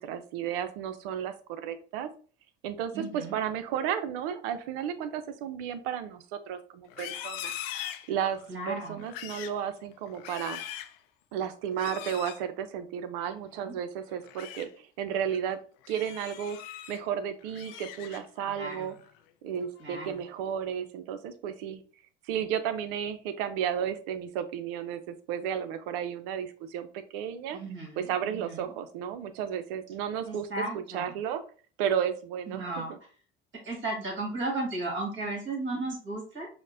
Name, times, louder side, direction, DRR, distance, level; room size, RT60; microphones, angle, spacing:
voice 1, 0.0-2.1 2.6-7.6 8.1-8.4 8.7-10.6 11.3-15.6 15.9-16.6 16.9-18.9 19.4-21.8 22.3-27.6 28.0-30.5 30.7-31.4 31.8-33.0, right 8 dB, 70° right, 10 dB, 0.5 m, -33 dB
voice 2, 2.9-3.3 8.5-9.0 13.6-13.8 18.5-18.9 19.8-20.2 27.5-28.7 30.3-31.1 32.5-32.9 33.6-36.5, right 2 dB, 40° right, 0 dB, 1.8 m, -35 dB
Livestock farm animals working animals, 6.9-8.5 9.0-9.6 10.1-11.0 11.7-12.4 14.1-14.7 15.1-15.4 15.8-17.0 17.4-18.4 18.8-19.2 19.6-20.0, left 11 dB, 75° left, 0.5 m, -41 dB
5.0 x 2.1 x 2.5 m, 0.41 s
hypercardioid pair, 70°, 29 cm